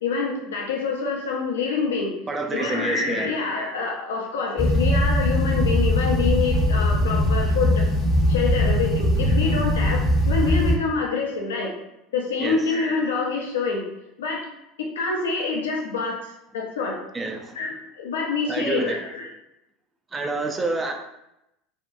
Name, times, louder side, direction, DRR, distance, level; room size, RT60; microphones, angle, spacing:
voice 1, 0.0-2.1 2.5-7.9 8.3-11.7 12.1-13.8 14.2-14.4 14.8-16.2 16.5-17.0 17.5-19.3, left 4 dB, 85° left, -1 dB, 0.5 m, -26 dB
voice 2, 2.3-3.3 12.4-12.6 17.1-17.6 18.5-19.0 20.1-20.9, right 3 dB, 25° right, 3 dB, 0.3 m, -27 dB
sound 1, 4.6-10.8, left 1 dB, 25° left, 0.7 m, -21 dB
2.7 x 2.2 x 2.5 m, 0.86 s
hypercardioid pair, 85°, 0 cm